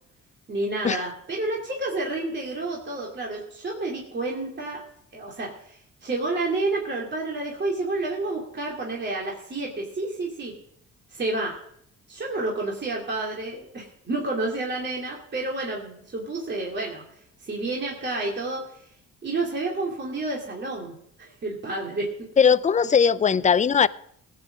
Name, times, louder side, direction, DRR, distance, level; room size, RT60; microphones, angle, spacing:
voice 1, 0.5-4.8 5.1-10.5 11.1-11.6 12.1-17.0 17.4-18.9 19.2-22.1 22.4-22.5, right 2 dB, 35° right, 2.6 m, -30 dB
voice 2, 22.4-23.9, left 6 dB, 25° left, 0.4 m, -19 dB
17.5 x 8.4 x 5.0 m
cardioid pair, 90°, 30 cm